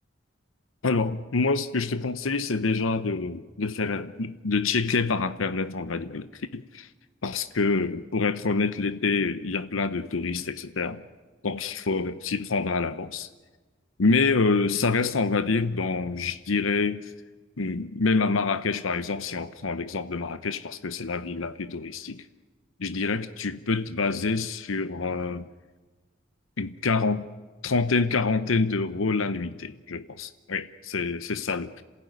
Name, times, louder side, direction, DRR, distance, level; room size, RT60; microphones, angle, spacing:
voice 1, 0.8-6.9 7.2-11.0 11.4-13.3 14.0-17.1 17.6-22.3 22.8-25.5 26.6-27.3 27.6-31.8, left 4 dB, 85° left, 0.8 m, -27 dB
27.0 x 16.0 x 9.3 m
head